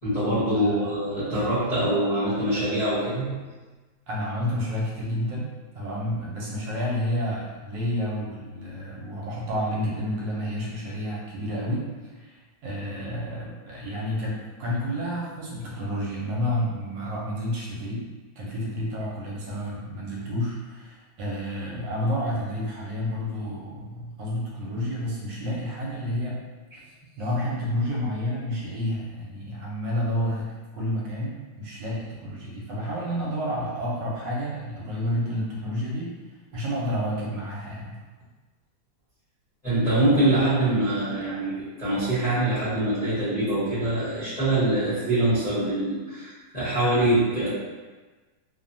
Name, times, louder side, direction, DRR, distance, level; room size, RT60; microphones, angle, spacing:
voice 1, 0.0-3.5 39.6-47.5, right 1 dB, 40° left, -13 dB, 0.6 m, -24 dB
voice 2, 0.5-0.9 4.1-5.5 5.7-11.9 12.1-18.0 18.4-26.4 27.2-36.1 36.5-38.0, equal, 70° right, -5 dB, 1.2 m, -30 dB
3.2 x 2.1 x 2.5 m, 1.3 s
omnidirectional pair, 2.1 m